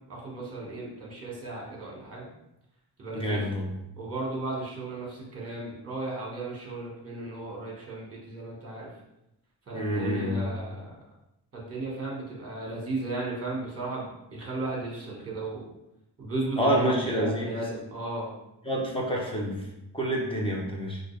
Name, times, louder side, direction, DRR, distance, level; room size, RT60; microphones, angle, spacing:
voice 1, 0.1-2.3 3.0-3.4 4.0-8.9 9.7-11.0 11.5-15.7 16.2-18.3, right 2 dB, 35° right, -3 dB, 1.6 m, -35 dB
voice 2, 3.1-3.7 9.7-10.4 16.6-17.5 18.7-19.6 19.9-21.0, equal, 10° left, -3 dB, 1.0 m, -28 dB
5.8 x 2.6 x 3.3 m, 0.88 s
wide cardioid pair, 135°, 43 cm